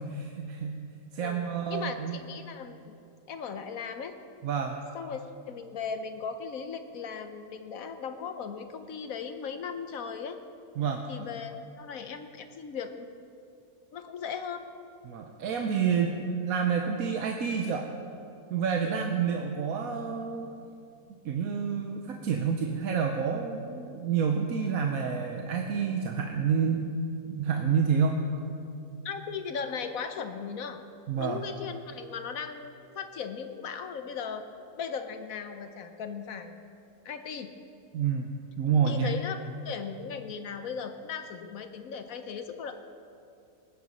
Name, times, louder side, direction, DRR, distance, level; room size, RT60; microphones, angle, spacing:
voice 1, 0.0-2.1 4.4-4.8 10.8-11.1 15.0-17.9 18.5-20.5 21.2-26.9 27.3-28.2 31.1-31.4 37.9-38.3 38.6-39.1, right 6 dB, 65° right, 3 dB, 1.2 m, -29 dB
voice 2, 1.2-2.9 3.3-4.1 4.9-10.4 11.1-13.1 13.9-14.7 18.8-19.1 29.0-30.8 31.2-34.4 34.8-36.6 37.0-37.5 38.8-39.4 39.6-42.7, left 6 dB, 65° left, 8 dB, 1.1 m, -37 dB
18.5 x 9.3 x 5.4 m, 2.5 s
omnidirectional pair, 1.7 m